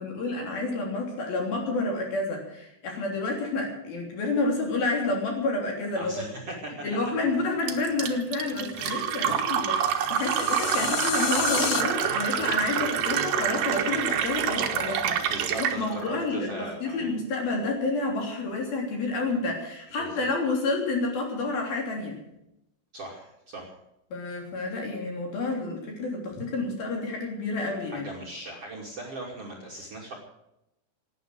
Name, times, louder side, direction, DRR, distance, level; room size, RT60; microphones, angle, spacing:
voice 1, 0.0-6.2 6.8-22.2 24.1-28.1, left 3 dB, 55° left, 0 dB, 4.8 m, -29 dB
voice 2, 5.9-6.8 8.7-9.5 10.3-10.4 15.2-17.1 19.9-20.3 22.9-23.7 27.9-30.1, right 2 dB, 40° right, -3 dB, 2.8 m, -39 dB
Fill (with liquid), 7.7-15.8, right 8 dB, 65° right, 2.6 m, -27 dB
sound 1, 10.0-11.8, left 11 dB, 80° left, 3.3 m, -31 dB
18.0 x 10.0 x 7.9 m, 0.85 s
omnidirectional pair, 5.5 m